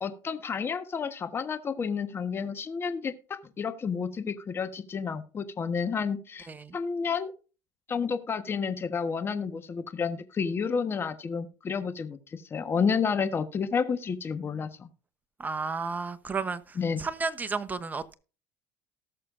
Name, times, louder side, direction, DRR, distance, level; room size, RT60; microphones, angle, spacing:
voice 1, 0.0-6.5 6.7-7.3 7.9-14.9 16.8-17.0, left 6 dB, 30° left, 1.3 m, -30 dB
voice 2, 15.4-18.1, right 4 dB, 20° right, 1.1 m, -33 dB
18.5 x 6.7 x 2.6 m
supercardioid pair, 90°, 7 cm